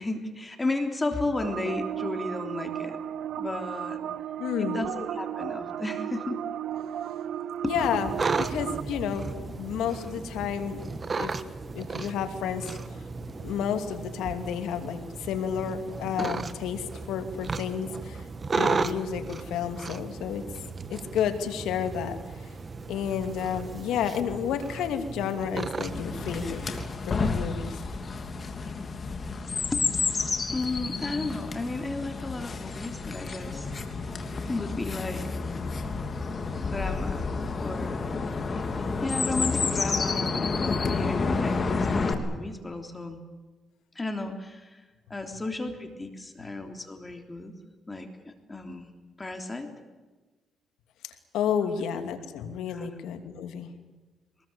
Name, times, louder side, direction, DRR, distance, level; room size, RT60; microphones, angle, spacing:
voice 1, 0.0-3.0 3.4-4.0 4.6-6.4 7.6-7.7 29.7-29.9 30.5-33.7 34.5-35.3 36.6-37.3 37.6-38.1 39.0-43.2 44.0-44.8 45.1-47.6 47.9-48.9 49.2-49.7 51.6-51.7 52.7-52.9, left 2 dB, 20° left, 6 dB, 3.4 m, -33 dB
sound 1, 1.4-8.8, right 10 dB, 75° right, 0.7 m, -34 dB
voice 2, 4.4-4.8 7.7-8.1 8.4-11.4 11.7-12.8 13.4-18.2 18.5-20.4 20.9-22.2 22.9-26.6 27.1-27.8 51.3-53.7, left 8 dB, 85° left, 7 dB, 2.8 m, -31 dB
sound 2, 7.7-26.9, right 4 dB, 35° right, 1.4 m, -35 dB
Chirp tweet, 25.9-42.1, left 4 dB, 40° left, 3.1 m, -30 dB
23.5 x 20.5 x 8.7 m, 1.2 s
cardioid pair, 90°, 0 cm